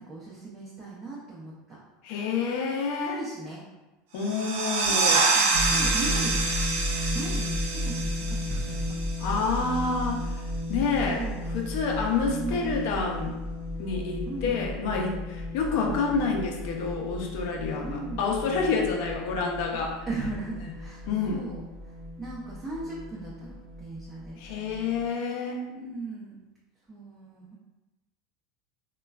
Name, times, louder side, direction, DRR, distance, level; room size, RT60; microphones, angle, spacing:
voice 1, 0.0-1.8 3.0-3.6 4.8-6.5 7.1-9.0 9.8-10.1 11.0-11.4 12.3-12.8 14.3-14.7 15.7-16.0 17.8-18.2 19.7-21.0 21.3-24.4 25.7-26.4 26.9-27.6, right 2 dB, 20° right, -6 dB, 0.6 m, -38 dB
voice 2, 2.0-3.2 4.1-5.3 9.2-10.2 10.7-11.3 11.5-13.4 13.8-20.0 21.1-21.4 24.4-25.6, left 4 dB, 65° left, 1 dB, 0.5 m, -28 dB
sound 1, 4.2-9.6, right 4 dB, 75° right, 0.4 m, -27 dB
sound 2, 5.5-25.1, left 1 dB, 35° right, 1.0 m, -34 dB
3.0 x 2.2 x 2.3 m, 1.1 s
supercardioid pair, 105°, 0 cm